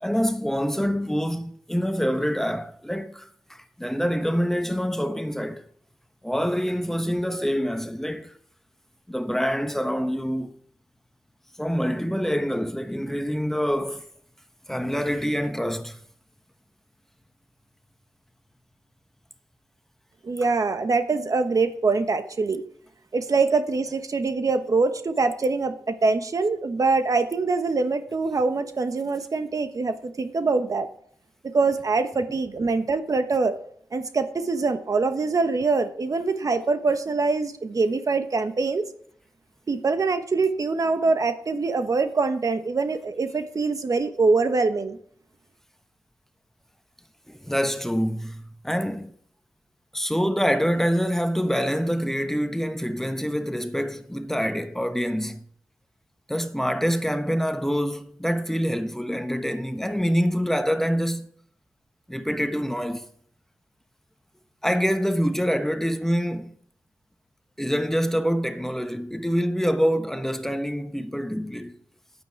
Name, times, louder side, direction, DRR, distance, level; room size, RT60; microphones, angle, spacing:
voice 1, 0.0-5.6 6.2-8.3 9.1-10.5 11.6-14.1 14.7-16.0 20.4-20.5 47.3-49.1 49.9-55.4 56.3-61.3 62.1-63.1 64.6-66.5 67.6-71.8, equal, 5° left, 1.1 m, -26 dB
voice 2, 20.2-22.6 23.1-30.9 31.5-33.6 33.9-38.9 39.7-45.0, right 4 dB, 60° right, 1.1 m, -24 dB
10.0 x 9.1 x 4.6 m
cardioid pair, 40°, 7 cm